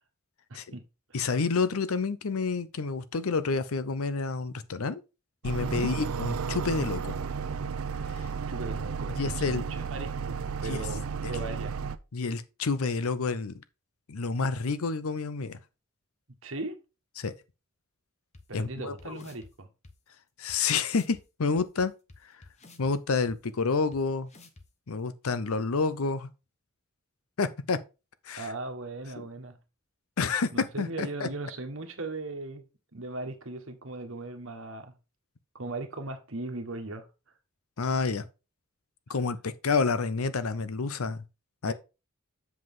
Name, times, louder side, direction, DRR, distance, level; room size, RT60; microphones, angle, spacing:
voice 1, 0.5-0.8 5.6-5.9 8.5-9.6 9.9-11.7 16.4-16.8 18.5-19.7 28.4-29.6 30.7-32.6 32.9-34.9 35.5-37.1 41.6-41.7, right 2 dB, 65° right, 1.5 m, -38 dB
voice 2, 1.1-5.0 5.4-7.2 9.1-9.6 10.6-10.8 12.1-13.6 14.1-15.6 17.2-17.3 18.5-19.2 20.4-21.9 22.8-24.3 24.9-26.3 27.4-27.8 28.3-28.5 30.2-31.3 37.8-38.3 39.1-41.2 41.6-41.7, left 4 dB, 80° left, 0.7 m, -29 dB
Heater warmup, 5.4-12.0, right 6 dB, 80° right, 0.5 m, -33 dB
sound 1, 18.3-18.4 19.0-19.5 19.8-19.9 20.5-20.6 20.9-21.2 21.6-22.9 23.3-23.4 23.9-24.0 24.3-24.7, left 2 dB, 30° left, 0.9 m, -51 dB
7.8 x 5.7 x 3.7 m
head